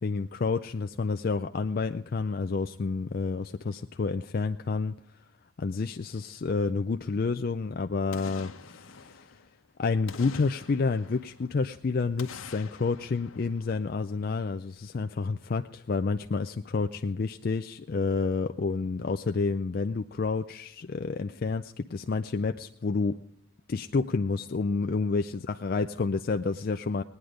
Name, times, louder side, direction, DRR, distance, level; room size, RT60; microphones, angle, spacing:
voice 1, 0.0-4.9 5.6-9.3 9.8-23.2 23.7-27.0, left 4 dB, 45° left, 7 dB, 0.4 m, -29 dB
Boom, 8.1-9.6 10.1-11.7 12.2-14.4 14.8-14.9, left 5 dB, 80° left, 1.0 m, -47 dB
19.0 x 9.5 x 5.0 m, 0.77 s
head